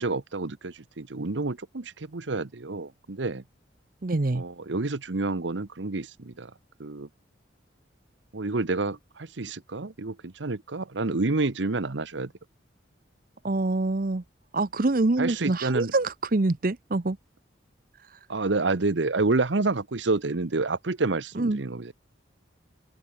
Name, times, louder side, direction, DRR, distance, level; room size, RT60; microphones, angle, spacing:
voice 1, 0.0-3.4 4.3-6.5 6.8-7.1 8.3-12.3 15.2-15.9 18.3-21.9, right 3 dB, 80° right, 1.0 m, -28 dB
voice 2, 4.0-4.4 13.4-14.2 14.5-17.2 21.4-21.6, right 2 dB, 50° right, 0.7 m, -25 dB
open air
head